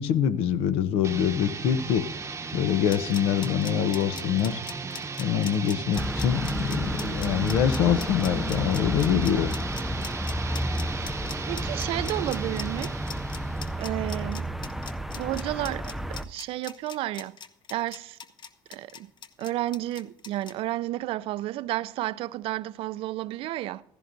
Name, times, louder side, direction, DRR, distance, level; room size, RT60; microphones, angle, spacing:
voice 1, 0.0-2.1 2.5-4.6 5.2-9.5, left 9 dB, 80° left, 0.7 m, -25 dB
sound 1, 1.0-13.9, right 4 dB, 30° right, 0.8 m, -36 dB
sound 2, 2.7-20.5, left 7 dB, 50° left, 0.9 m, -41 dB
sound 3, 5.9-16.2, equal, ahead, 0.5 m, -31 dB
voice 2, 11.5-13.0 13.8-14.5 15.2-15.9 16.3-17.4 17.7-18.2 18.7-19.1 19.4-23.8, right 15 dB, 70° right, 0.4 m, -31 dB
15.5 x 14.5 x 2.6 m
supercardioid pair, 80°, 10 cm